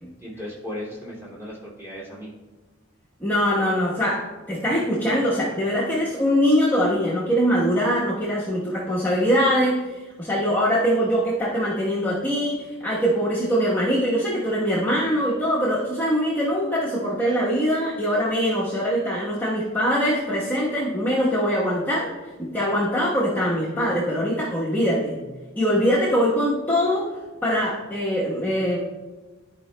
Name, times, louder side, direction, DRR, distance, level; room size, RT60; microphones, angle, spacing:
voice 1, 0.2-2.3, left 1 dB, 10° right, -7 dB, 2.4 m, -36 dB
voice 2, 3.2-22.1 22.4-25.2 25.6-27.1 27.4-28.8, equal, 10° left, -8 dB, 1.0 m, -23 dB
13.5 x 4.9 x 2.2 m, 1.2 s
head